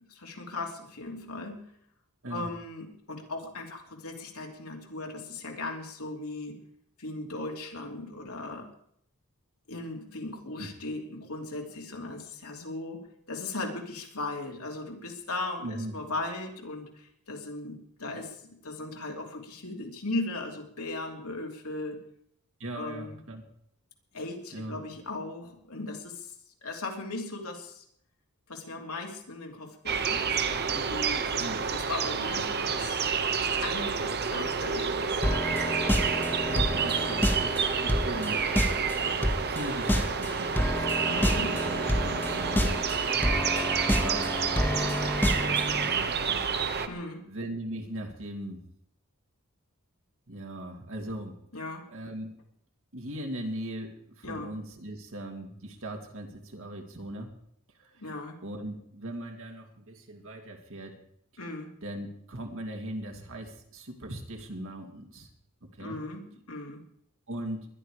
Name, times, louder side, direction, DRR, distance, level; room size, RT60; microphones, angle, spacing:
voice 1, 0.1-1.7 2.3-6.6 7.0-8.7 9.7-13.0 13.3-22.0 22.7-23.2 24.1-26.3 26.6-27.8 28.5-31.4 31.7-33.1 33.5-35.2 41.0-41.5 46.9-47.3 51.5-51.9 54.2-54.5 58.0-58.4 61.4-61.7 65.8-66.8, left 2 dB, 75° left, 1 dB, 3.0 m, -37 dB
voice 2, 15.6-15.9 22.6-23.4 24.5-24.8 31.4-31.6 36.5-38.4 39.5-40.9 41.1-42.8 43.8-46.9 47.3-48.6 50.3-51.3 51.9-52.3 52.9-57.3 57.8-58.0 58.4-61.0 61.8-65.3 65.7-66.0 67.3-67.7, right 1 dB, 65° right, 3 dB, 2.5 m, -39 dB
sound 1, 29.9-46.9, right 6 dB, 50° right, 1.1 m, -29 dB
sound 2, 35.2-45.9, equal, 10° left, 1.3 m, -29 dB
20.5 x 11.5 x 4.9 m, 0.69 s
head